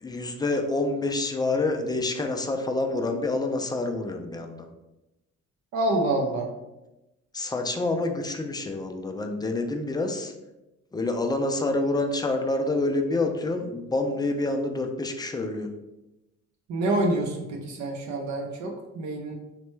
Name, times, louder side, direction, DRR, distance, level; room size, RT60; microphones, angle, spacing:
voice 1, 0.0-4.7 7.3-10.3 10.9-15.7, left 2 dB, 15° left, 4 dB, 0.3 m, -27 dB
voice 2, 5.7-6.5 16.7-19.4, right 1 dB, 70° right, 1 dB, 0.5 m, -27 dB
3.1 x 2.2 x 3.1 m, 0.98 s
cardioid pair, 90°, 30 cm